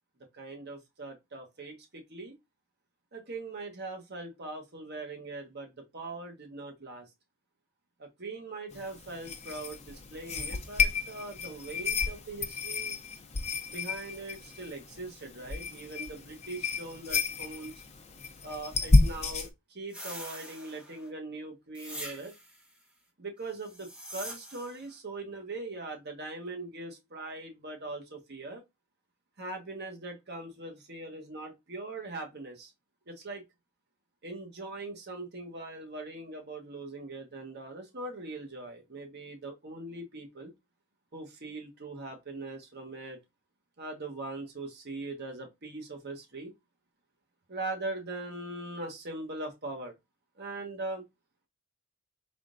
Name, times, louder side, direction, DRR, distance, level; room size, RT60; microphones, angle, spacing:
voice 1, 0.3-2.3 3.1-7.1 8.0-12.9 13.7-17.7 18.4-22.3 23.2-28.6 29.4-32.7 33.1-33.4 34.2-40.5 41.1-43.2 43.8-46.5 47.5-49.9 50.4-51.0, right 2 dB, 50° right, 1.2 m, -41 dB
sound 1, 8.7-19.5, left 3 dB, 30° left, 0.6 m, -31 dB
sound 2, 19.9-21.1 21.7-22.6 23.6-24.8, equal, 5° right, 1.1 m, -44 dB
4.2 x 3.6 x 2.6 m
head